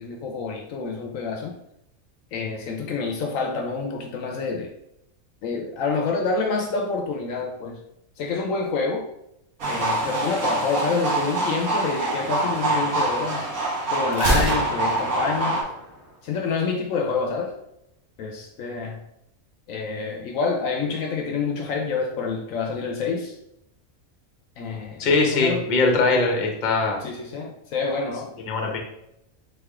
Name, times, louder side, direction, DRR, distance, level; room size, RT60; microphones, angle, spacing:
voice 1, 0.0-1.6 2.3-4.7 5.4-7.8 8.2-9.1 9.7-13.5 13.9-15.6 16.2-17.5 18.2-19.0 19.7-23.4 24.6-25.1 25.3-25.6 27.0-28.3, left 4 dB, 70° left, 2 dB, 1.0 m, -27 dB
sound 1, 9.6-15.6, right 2 dB, 80° right, 1.7 m, -25 dB
Gunshot gunfire, 14.1-16.1, right 1 dB, 55° right, 1.1 m, -27 dB
voice 2, 25.0-27.0 28.4-28.8, left 3 dB, 40° left, 1 dB, 0.8 m, -21 dB
3.7 x 3.3 x 3.5 m, 0.82 s
omnidirectional pair, 1.5 m